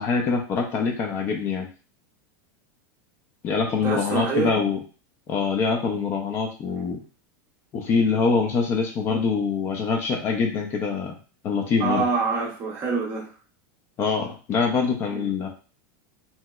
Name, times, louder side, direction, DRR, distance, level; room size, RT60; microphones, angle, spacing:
voice 1, 0.0-1.7 3.4-4.8 5.3-7.0 7.7-11.1 11.4-12.0 14.0-15.5, left 5 dB, 20° left, 2 dB, 0.3 m, -24 dB
voice 2, 3.6-4.5 11.8-13.3 15.1-15.3, right 5 dB, 20° right, -2 dB, 0.6 m, -26 dB
3.0 x 2.8 x 2.3 m, 0.36 s
supercardioid pair, 170°, 11 cm